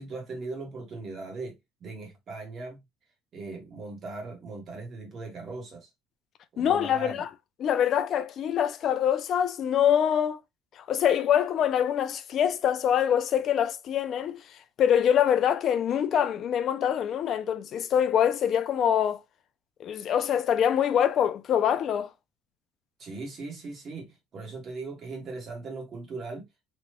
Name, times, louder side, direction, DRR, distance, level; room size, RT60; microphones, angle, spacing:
voice 1, 0.0-2.8 3.3-5.9 6.5-7.2 23.0-26.5, right 3 dB, 35° right, 1.1 m, -39 dB
voice 2, 6.6-7.3 7.6-10.4 10.8-14.4 14.8-19.2 19.8-22.1, left 9 dB, 40° left, 0.3 m, -24 dB
3.0 x 2.2 x 2.9 m
cardioid pair, 160°, 0 cm